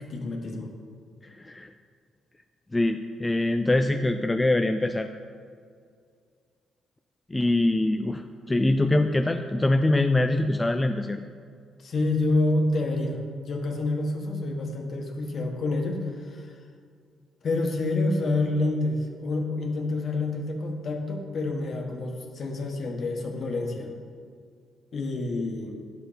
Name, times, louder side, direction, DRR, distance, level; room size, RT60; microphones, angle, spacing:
voice 1, 0.1-0.7 11.8-16.6 17.4-23.9 24.9-25.8, left 2 dB, 50° left, 2 dB, 1.4 m, -28 dB
voice 2, 1.2-1.7 2.7-5.1 7.3-11.2, left 2 dB, 15° left, 6 dB, 0.4 m, -24 dB
9.7 x 6.3 x 5.1 m, 2.2 s
cardioid pair, 90°, 0 cm